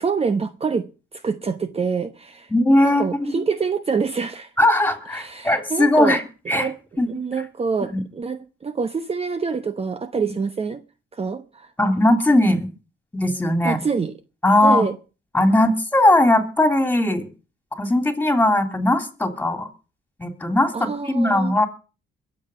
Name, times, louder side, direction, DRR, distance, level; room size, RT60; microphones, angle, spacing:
voice 1, 0.0-2.5 2.8-4.5 5.1-6.2 6.5-6.8 7.1-10.8 11.1-11.7 13.6-14.2 14.6-15.0 20.7-21.6, right 5 dB, 30° right, 0.9 m, -26 dB
voice 2, 2.5-3.4 4.6-6.2 6.5-6.7 7.0-7.1 7.9-8.0 11.8-12.7 13.1-13.8 14.4-14.9 15.3-17.3 17.7-19.7 20.2-21.7, left 1 dB, 10° left, 3.4 m, -19 dB
22.0 x 7.7 x 5.6 m
cardioid pair, 90°, 20 cm